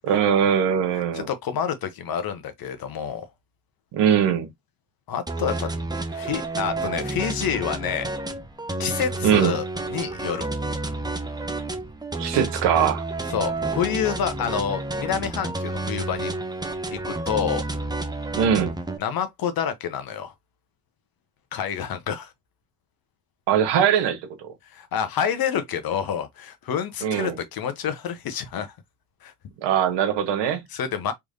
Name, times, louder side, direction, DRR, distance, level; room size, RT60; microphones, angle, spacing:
voice 1, 0.0-1.3 3.9-4.5 9.2-9.6 12.2-13.0 18.4-18.7 23.5-24.5 27.0-27.4 29.6-30.6, right 8 dB, 65° right, 1.3 m, -21 dB
voice 2, 0.9-3.2 5.1-5.7 6.1-8.1 8.8-9.6 9.9-10.5 13.3-16.3 16.9-17.7 19.0-20.3 21.5-22.3 24.6-28.7 29.2-29.3 30.7-31.1, left 8 dB, 50° left, 1.0 m, -28 dB
sound 1, 5.3-19.0, right 2 dB, 10° right, 0.8 m, -30 dB
3.4 x 3.2 x 2.6 m
hypercardioid pair, 60°, 46 cm